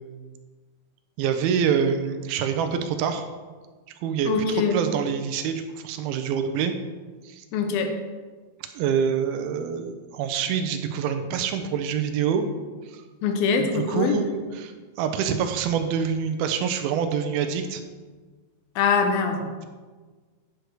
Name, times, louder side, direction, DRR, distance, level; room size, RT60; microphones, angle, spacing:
voice 1, 1.2-3.2 4.0-6.7 7.2-7.4 8.7-12.5 12.9-13.0 13.6-17.8 19.4-19.7, right 7 dB, 85° right, 8 dB, 2.6 m, -26 dB
voice 2, 4.3-4.8 7.5-8.0 13.2-14.2 18.8-19.5, left 5 dB, 85° left, 6 dB, 2.7 m, -23 dB
9.6 x 6.5 x 4.7 m, 1.4 s
omnidirectional pair, 4.3 m